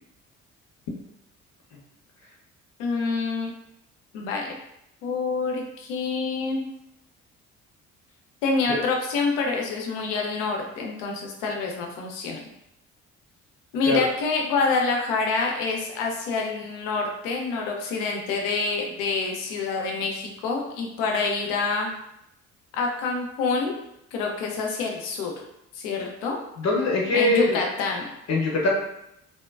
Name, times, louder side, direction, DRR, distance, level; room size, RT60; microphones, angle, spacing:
voice 1, 2.8-3.5 4.1-4.5 5.0-6.7 8.4-12.4 13.7-21.9 22.7-23.8 24.1-25.3 25.7-26.4 27.1-28.1, left 4 dB, 75° left, 1 dB, 0.6 m, -27 dB
voice 2, 26.6-27.6 28.3-28.7, left 2 dB, 45° left, -2 dB, 0.8 m, -22 dB
2.7 x 2.1 x 2.3 m, 0.82 s
hypercardioid pair, 50°, 38 cm